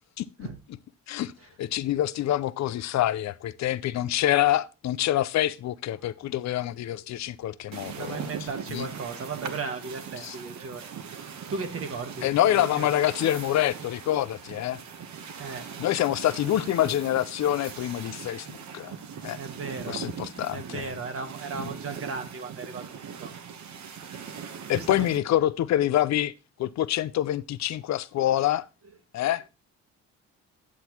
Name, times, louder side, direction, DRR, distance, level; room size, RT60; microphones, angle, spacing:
voice 1, 0.2-0.5 1.1-1.3 1.6-8.9 10.2-10.4 12.2-14.8 15.8-18.9 19.2-19.4 19.9-20.9 21.6-21.7 24.7-26.3 26.6-28.7 29.1-29.4, left 13 dB, 65° left, 0.6 m, -26 dB
sound 1, 7.7-25.2, right 7 dB, 65° right, 1.2 m, -40 dB
voice 2, 7.9-10.8 11.5-12.9 15.3-15.7 19.4-20.0 20.5-22.9 23.2-23.3 24.7-25.1, right 4 dB, 50° right, 1.4 m, -36 dB
8.5 x 7.9 x 3.0 m
cardioid pair, 90°, 30 cm